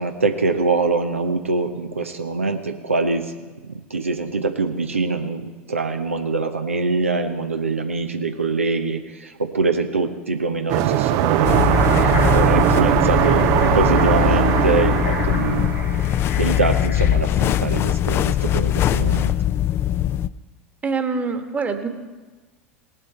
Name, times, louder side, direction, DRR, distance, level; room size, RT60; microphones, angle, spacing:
voice 1, 0.0-3.3 3.6-13.5 13.7-15.7 16.4-19.3, right 3 dB, 85° right, 5 dB, 0.7 m, -24 dB
sound 1, 10.7-16.2, right 13 dB, 50° right, 0.5 m, -20 dB
sound 2, 11.4-20.3, left 12 dB, 35° left, 0.4 m, -21 dB
sound 3, 11.7-17.2, left 4 dB, 70° left, 2.6 m, -35 dB
voice 2, 20.8-21.9, right 4 dB, 20° right, 6 dB, 1.3 m, -24 dB
18.5 x 7.9 x 4.5 m, 1.3 s
figure-of-eight pair, 80°, 7 cm